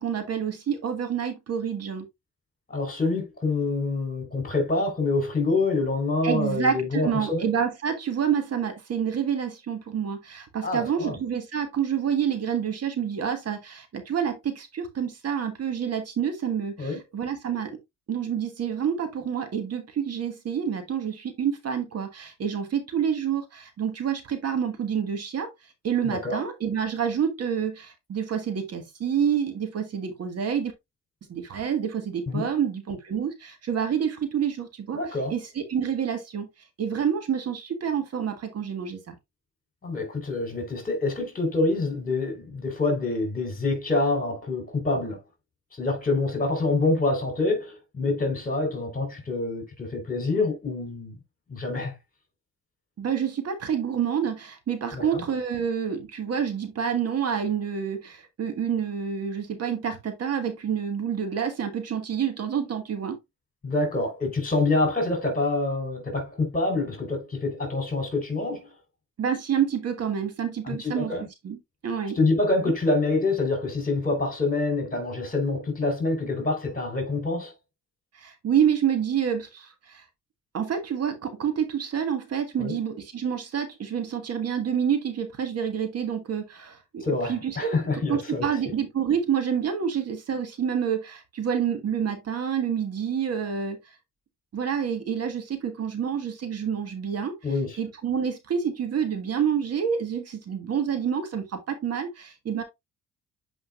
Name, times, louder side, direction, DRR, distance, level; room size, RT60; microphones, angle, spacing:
voice 1, 0.0-2.0 6.2-17.8 18.1-25.5 25.8-30.7 31.3-35.0 35.3-36.5 36.8-39.1 53.0-63.2 69.2-71.1 71.4-72.2 78.1-80.0 80.5-87.0 87.3-87.8 88.1-94.0 94.5-97.3 97.8-102.6, right 8 dB, 55° right, 1.6 m, -28 dB
voice 2, 2.7-7.5 10.6-11.2 16.8-17.0 26.0-26.4 32.3-32.5 34.9-35.3 39.8-45.2 45.8-51.2 51.5-51.9 54.9-55.2 63.6-68.7 70.6-71.3 72.2-77.5 82.6-82.8 87.0-88.5 97.4-97.8, left 3 dB, 30° left, 4.1 m, -26 dB
8.0 x 5.1 x 2.4 m
cardioid pair, 90°, 30 cm